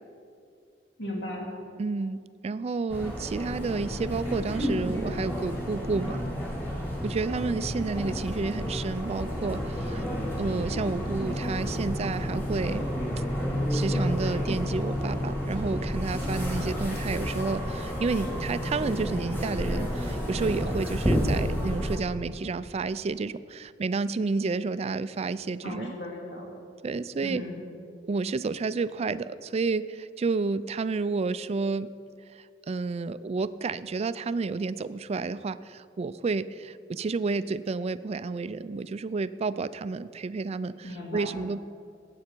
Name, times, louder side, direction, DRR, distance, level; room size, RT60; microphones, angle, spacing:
voice 1, 1.0-1.5 25.6-26.5 27.2-27.6 40.8-41.4, left 1 dB, 70° left, -1 dB, 2.4 m, -36 dB
voice 2, 1.8-6.2 7.0-10.0 10.4-12.9 13.7-26.0 26.8-27.4 28.0-31.9 32.3-41.6, right 4 dB, 35° right, 15 dB, 0.3 m, -30 dB
sound 1, 2.9-22.0, equal, 10° left, 2.5 m, -30 dB
18.0 x 8.5 x 4.5 m, 2.4 s
head